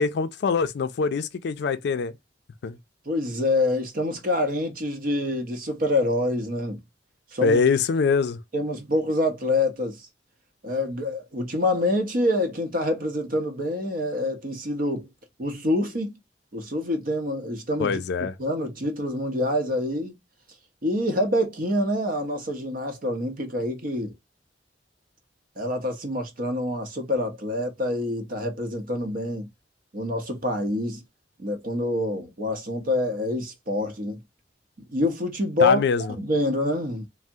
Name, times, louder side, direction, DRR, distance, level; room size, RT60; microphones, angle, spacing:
voice 1, 0.0-2.2 2.6-2.8 7.4-8.4 17.8-18.3 35.6-36.1, left 5 dB, 65° left, 0.4 m, -23 dB
voice 2, 3.1-6.8 7.3-7.6 8.5-10.1 10.6-15.1 15.4-16.1 16.5-18.0 18.4-20.1 20.8-24.1 25.6-29.5 29.9-31.0 31.4-34.2 34.9-37.1, left 1 dB, 50° right, 0.7 m, -26 dB
3.4 x 2.0 x 2.6 m
head